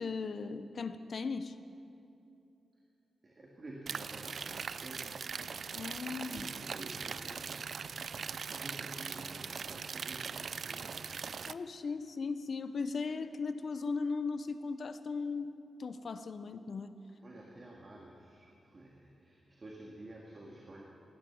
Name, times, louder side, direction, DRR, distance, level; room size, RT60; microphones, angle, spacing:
voice 1, 0.0-1.6 5.7-6.5 11.5-15.5 15.8-16.9, left 4 dB, 55° left, 11 dB, 0.8 m, -37 dB
voice 2, 3.2-5.5 6.3-11.3 17.2-20.8, right 1 dB, 40° right, -1 dB, 1.9 m, -51 dB
sound 1, 3.9-11.5, right 6 dB, 60° right, 0.4 m, -41 dB
16.5 x 11.0 x 7.1 m, 2.7 s
cardioid pair, 90°, 0 cm